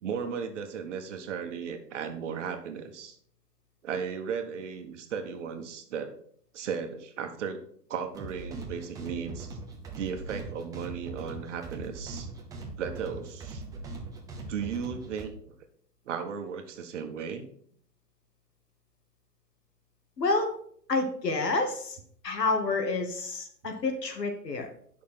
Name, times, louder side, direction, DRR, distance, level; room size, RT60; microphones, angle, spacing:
voice 1, 0.0-3.2 3.8-6.1 6.5-7.6 7.9-9.6 10.0-12.3 12.8-13.6 14.5-15.3 16.0-17.5, right 6 dB, 45° right, 6 dB, 1.5 m, -35 dB
sound 1, 8.1-15.3, right 3 dB, 5° right, 0.8 m, -41 dB
voice 2, 20.2-20.5 20.9-22.0 22.2-24.7, left 3 dB, 85° left, 4 dB, 2.4 m, -28 dB
8.5 x 6.3 x 5.8 m, 0.63 s
hypercardioid pair, 145°, 48 cm